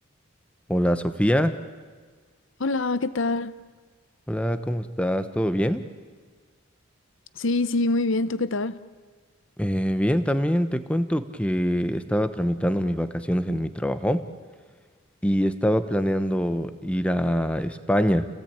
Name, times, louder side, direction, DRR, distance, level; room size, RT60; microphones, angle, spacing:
voice 1, 0.7-1.6 4.3-5.8 9.6-14.2 15.2-18.3, equal, 5° left, 0.9 m, -24 dB
voice 2, 2.6-3.6 7.3-8.8, left 2 dB, 60° left, 0.8 m, -25 dB
29.5 x 17.0 x 8.7 m
head